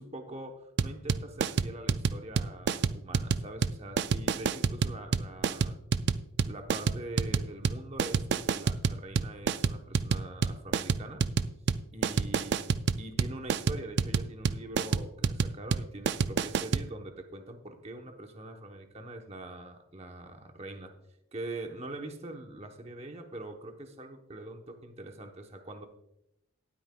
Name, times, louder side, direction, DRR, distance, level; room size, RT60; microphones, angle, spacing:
voice 1, 0.0-5.8 6.4-11.2 11.9-12.7 13.0-20.9 21.3-25.9, right 2 dB, 30° right, 4 dB, 0.9 m, -43 dB
sound 1, 0.8-16.9, right 5 dB, 50° right, 0.3 m, -28 dB
18.5 x 8.6 x 2.3 m, 0.81 s
head